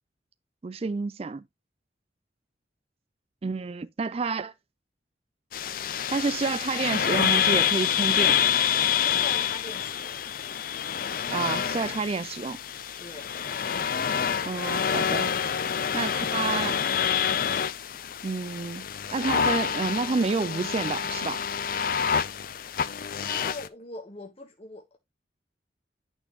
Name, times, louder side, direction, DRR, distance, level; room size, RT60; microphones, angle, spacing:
voice 1, 0.6-1.4 3.4-4.5 6.1-8.4 11.3-12.6 14.5-15.3 15.9-16.8 18.2-21.4, right 4 dB, 35° right, 0.4 m, -29 dB
sound 1, 5.5-23.7, left 8 dB, 50° left, 0.5 m, -27 dB
voice 2, 9.0-10.2 13.0-13.3 23.1-25.0, left 2 dB, 35° left, 1.3 m, -42 dB
8.8 x 6.0 x 3.0 m
head